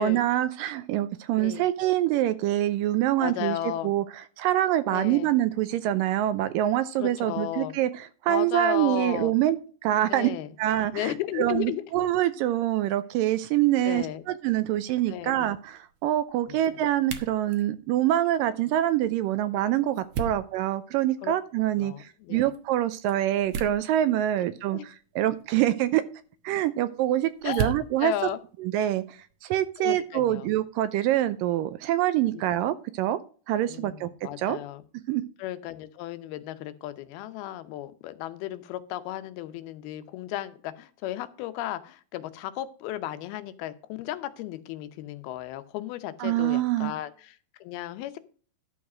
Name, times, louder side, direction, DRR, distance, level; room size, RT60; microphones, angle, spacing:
voice 1, 0.0-3.6 3.8-4.0 4.4-9.6 9.8-10.3 10.6-26.0 26.4-28.1 28.6-33.2 33.5-34.1 34.4-34.6 35.1-35.2 46.2-46.9, right 13 dB, 80° right, 13 dB, 2.1 m, -25 dB
voice 2, 3.2-4.0 4.9-5.3 7.0-7.8 8.3-9.3 10.1-10.5 10.9-11.8 13.8-14.2 15.1-15.4 16.5-16.6 20.3-20.4 21.2-21.3 21.8-22.5 24.7-24.9 27.4-27.7 28.0-28.4 29.8-30.5 33.7-34.8 35.4-48.2, left 14 dB, 85° left, 11 dB, 2.8 m, -34 dB
sound 1, 14.6-29.4, right 6 dB, 65° right, 2.0 m, -41 dB
12.0 x 4.8 x 6.1 m, 0.40 s
omnidirectional pair, 4.3 m